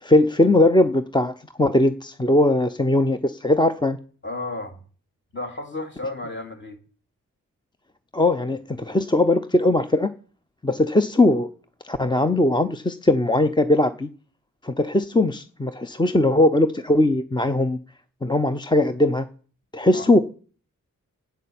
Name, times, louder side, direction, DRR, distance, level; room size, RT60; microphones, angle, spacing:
voice 1, 0.0-4.0 8.1-10.1 10.6-11.5 11.8-14.1 14.6-17.8 18.2-19.3 19.7-20.2, left 1 dB, 15° left, 0.6 m, -20 dB
voice 2, 4.2-4.8 5.3-6.8 19.8-20.1, left 2 dB, 35° left, 2.6 m, -33 dB
11.5 x 9.3 x 8.6 m
wide cardioid pair, 100°, 32 cm